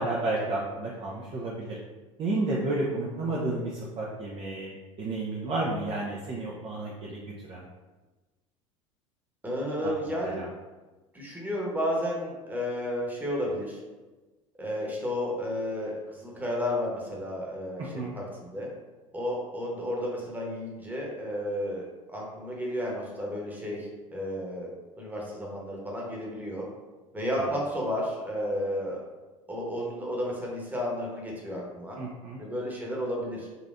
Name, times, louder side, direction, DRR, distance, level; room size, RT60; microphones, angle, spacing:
voice 1, 0.0-1.8 2.2-7.2 7.5-7.6 9.8-9.9 10.2-10.5 17.8-18.2 32.0-32.4, right 2 dB, 30° right, -3 dB, 0.5 m, -31 dB
voice 2, 9.4-10.4 11.1-13.8 14.6-18.7 19.1-21.8 22.1-24.7 25.0-26.7 27.1-29.0 29.5-32.0 32.4-33.5, equal, 10° right, -3 dB, 1.0 m, -32 dB
4.1 x 2.5 x 2.5 m, 1.2 s
figure-of-eight pair, 75°, 17 cm